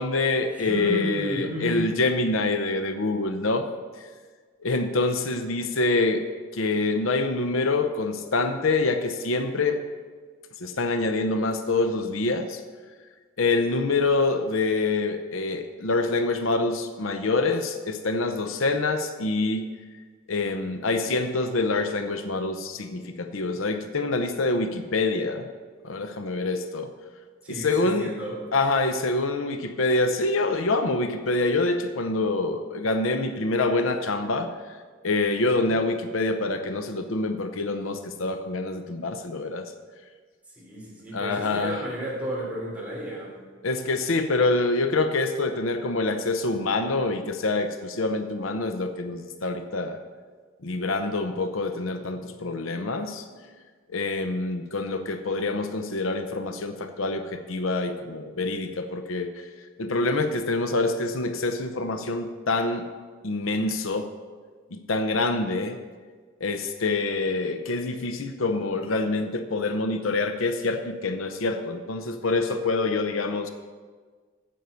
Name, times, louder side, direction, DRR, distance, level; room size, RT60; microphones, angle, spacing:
voice 1, 0.0-3.6 4.6-6.2 6.5-9.8 10.6-12.6 13.4-19.6 20.3-25.4 25.8-26.9 27.5-28.1 28.5-34.5 35.0-39.7 41.1-41.8 43.6-50.0 50.6-53.2 53.9-59.5 59.8-62.9 63.2-64.1 64.7-65.8 66.4-73.5, left 3 dB, 75° left, 8 dB, 0.7 m, -26 dB
voice 2, 0.6-1.8 27.4-28.4 40.6-43.3, equal, 5° right, -5 dB, 3.4 m, -32 dB
9.3 x 8.0 x 6.9 m, 1.5 s
head